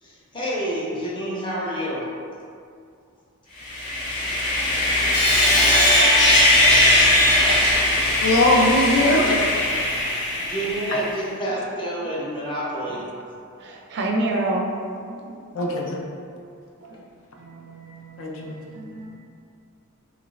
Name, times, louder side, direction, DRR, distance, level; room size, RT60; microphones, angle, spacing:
voice 1, 0.0-2.0 10.4-13.0, right 1 dB, 20° left, -7 dB, 0.6 m, -28 dB
Sawing, 3.6-11.1, left 1 dB, 90° left, 1.1 m, -19 dB
voice 2, 8.2-9.4 15.5-16.0 18.2-18.5, left 1 dB, 65° left, -1 dB, 0.4 m, -20 dB
voice 3, 13.6-14.7 15.1-15.4 16.2-16.5 16.8-17.0 17.4-19.2, right 2 dB, 50° right, 0 dB, 0.4 m, -30 dB
3.0 x 2.4 x 3.0 m, 2.4 s
head